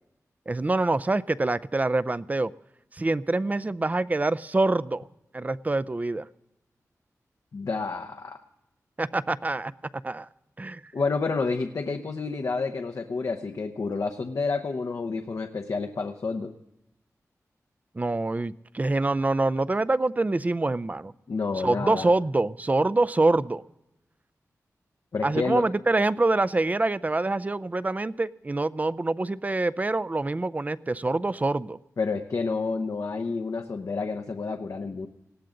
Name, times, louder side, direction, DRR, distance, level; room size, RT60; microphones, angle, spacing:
voice 1, 0.5-2.5 2.9-5.0 5.3-6.3 9.0-9.7 10.0-10.3 10.6-10.8 17.9-21.1 21.6-23.6 25.2-31.8, right 2 dB, 25° right, 17 dB, 0.5 m, -25 dB
voice 2, 7.5-8.4 10.9-16.5 21.3-22.1 25.1-25.7 32.0-35.1, left 4 dB, 65° left, 5 dB, 0.8 m, -29 dB
19.5 x 16.5 x 3.9 m, 0.89 s
wide cardioid pair, 75°, 6 cm